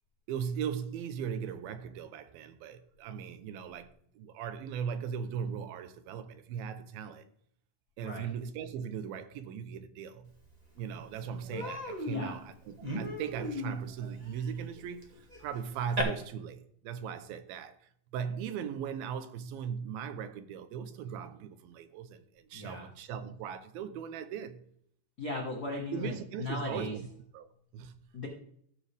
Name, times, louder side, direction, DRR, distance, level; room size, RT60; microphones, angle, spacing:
voice 1, 0.3-7.3 8.0-10.3 10.8-15.0 15.4-24.6 25.9-27.1 27.3-27.9, right 7 dB, 85° right, 2.7 m, -38 dB
Human voice, 10.5-10.6 10.9-11.1 11.5-16.0, equal, 20° right, 1.1 m, -38 dB
voice 2, 12.1-12.4 22.5-22.9 25.2-27.0 28.1-28.3, left 2 dB, 65° left, 0.9 m, -37 dB
15.0 x 7.3 x 3.4 m
omnidirectional pair, 4.2 m